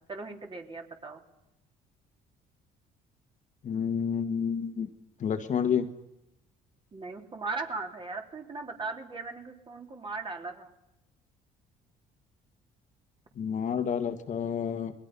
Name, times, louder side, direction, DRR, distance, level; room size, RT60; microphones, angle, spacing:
voice 1, 0.1-1.2 6.9-10.7, right 3 dB, 30° right, 3 dB, 3.5 m, -38 dB
voice 2, 3.6-4.9 5.2-5.9 13.4-14.9, left 7 dB, 45° left, 7 dB, 1.8 m, -29 dB
29.0 x 21.5 x 5.5 m, 0.88 s
cardioid pair, 110°, 17 cm